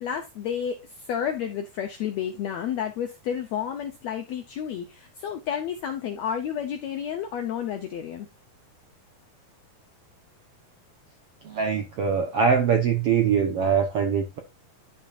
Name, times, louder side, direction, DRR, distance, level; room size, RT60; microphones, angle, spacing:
voice 1, 0.0-8.3, left 8 dB, 80° left, 1.6 m, -31 dB
voice 2, 11.4-14.4, right 6 dB, 70° right, 1.4 m, -23 dB
11.0 x 5.9 x 2.5 m
omnidirectional pair, 4.1 m